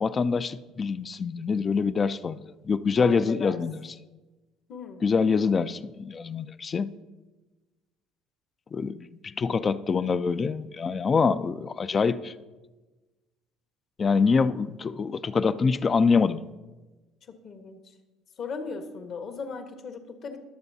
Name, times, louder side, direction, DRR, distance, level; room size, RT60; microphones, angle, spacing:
voice 1, 0.0-2.4 2.6-3.8 5.0-6.9 8.7-12.3 14.0-16.4, left 5 dB, 35° left, 14 dB, 0.4 m, -25 dB
voice 2, 3.0-3.6 4.7-5.0 17.4-17.8 18.4-20.4, left 4 dB, 55° left, 7 dB, 1.2 m, -37 dB
20.5 x 6.9 x 2.7 m, 1.2 s
hypercardioid pair, 70°, 0 cm